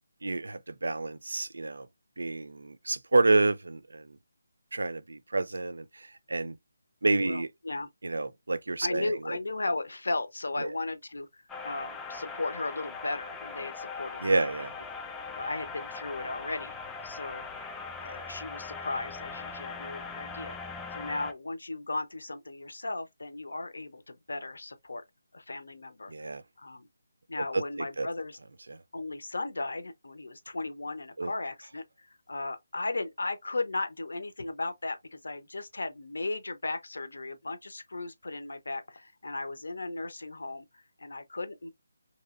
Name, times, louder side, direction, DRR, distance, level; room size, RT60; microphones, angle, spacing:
voice 1, 0.2-1.9 2.2-4.2 4.7-6.6 7.0-7.5 8.0-9.4 10.6-10.7 14.2-14.7 26.1-26.4 27.5-28.1 28.7-28.8 31.2-31.3, right 3 dB, 75° right, 0.4 m, -29 dB
voice 2, 7.2-7.9 8.8-14.5 15.3-16.7 17.0-17.4 18.0-20.6 20.9-25.0 25.3-26.3 26.6-26.9 27.3-28.4 28.9-41.7, left 2 dB, 75° left, 0.7 m, -36 dB
sound 1, 11.5-21.3, left 4 dB, 10° left, 0.4 m, -40 dB
3.0 x 2.7 x 2.4 m
figure-of-eight pair, 160°, 0 cm